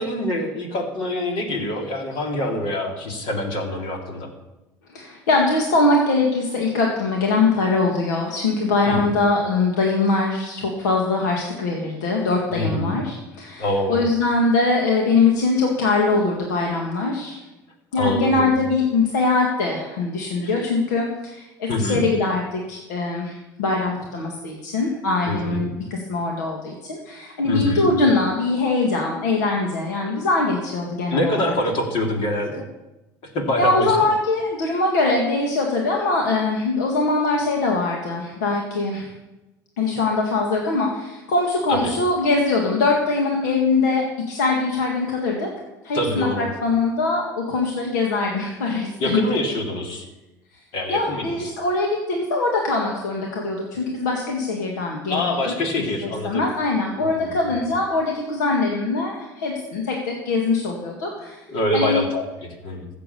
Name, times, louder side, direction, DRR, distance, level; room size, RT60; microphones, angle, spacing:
voice 1, 0.0-4.3 8.8-9.1 12.5-13.0 13.6-14.1 18.0-18.5 20.4-20.7 21.7-22.0 25.3-25.7 27.4-27.9 31.1-32.7 33.3-34.1 41.7-41.9 45.9-46.5 49.0-50.0 50.7-51.5 55.1-56.5 57.0-57.6 61.5-62.9, left 1 dB, 65° left, 1 dB, 3.4 m, -25 dB
voice 2, 4.9-17.4 17.9-31.5 33.6-39.1 39.8-45.5 45.8-49.3 50.9-55.5 55.8-61.4 61.7-62.0, left 3 dB, 85° left, 0 dB, 2.0 m, -22 dB
15.0 x 7.6 x 6.9 m, 1.0 s
hypercardioid pair, 75°, 9 cm